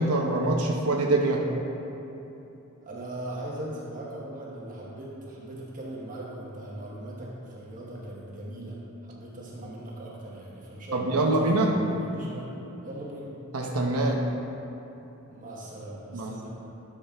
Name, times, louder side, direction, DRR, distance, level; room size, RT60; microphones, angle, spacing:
voice 1, 0.0-1.4 10.9-11.7 13.5-14.2 16.1-16.5, right 2 dB, 85° right, 0 dB, 1.0 m, -24 dB
voice 2, 2.8-8.8 9.0-12.6 12.8-13.3 15.3-16.5, right 1 dB, 40° right, -4 dB, 1.2 m, -39 dB
12.0 x 6.2 x 3.6 m, 3.0 s
head